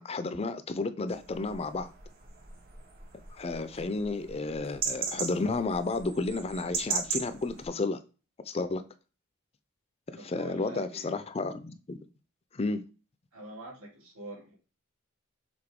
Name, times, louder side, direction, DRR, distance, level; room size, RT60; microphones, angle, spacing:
voice 1, 0.0-1.9 3.3-8.0 8.5-8.8 10.2-12.0 12.5-12.8, left 3 dB, 30° left, 0.4 m, -32 dB
sound 1, 1.1-7.7, right 5 dB, 45° right, 1.3 m, -38 dB
voice 2, 10.1-11.3 13.3-14.6, right 1 dB, 85° right, 3.2 m, -45 dB
6.8 x 3.9 x 3.6 m
head